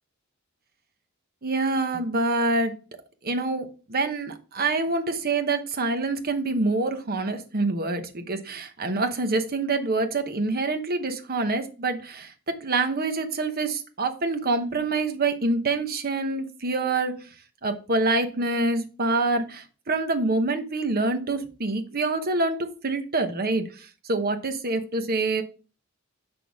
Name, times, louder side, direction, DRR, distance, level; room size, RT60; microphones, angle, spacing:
voice 1, 1.4-2.8 3.2-17.3 17.6-25.4, right 3 dB, 45° right, 7 dB, 1.0 m, -26 dB
6.9 x 6.2 x 3.6 m, 0.36 s
head